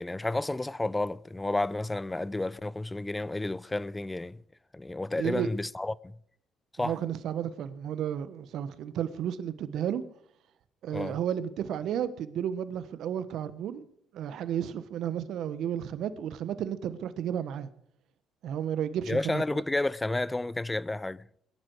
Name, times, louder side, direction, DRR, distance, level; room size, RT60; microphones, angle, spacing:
voice 1, 0.0-4.4 4.7-6.1 6.8-6.9 10.9-11.2 19.1-21.3, left 2 dB, 15° left, 0.5 m, -31 dB
voice 2, 5.2-5.5 6.8-10.0 10.8-13.9 14.1-17.7 18.4-19.6, right 9 dB, 70° right, 1.2 m, -32 dB
21.5 x 11.5 x 4.7 m
hypercardioid pair, 60°, 0 cm